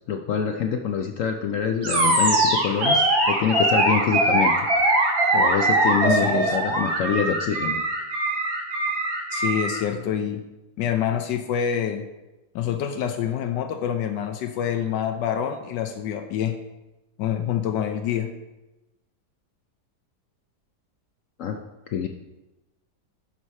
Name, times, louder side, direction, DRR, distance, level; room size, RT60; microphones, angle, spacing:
voice 1, 0.1-4.7 5.3-7.8 21.4-21.6 21.9-22.1, left 7 dB, 70° left, 4 dB, 0.7 m, -25 dB
Animal, 1.8-9.8, right 2 dB, 65° right, 2.1 m, -22 dB
voice 2, 6.1-6.6 9.3-10.4 10.8-12.0 12.5-16.6 17.2-18.3, left 9 dB, 90° left, 5 dB, 1.3 m, -26 dB
10.0 x 4.7 x 4.2 m, 1.0 s
omnidirectional pair, 1.8 m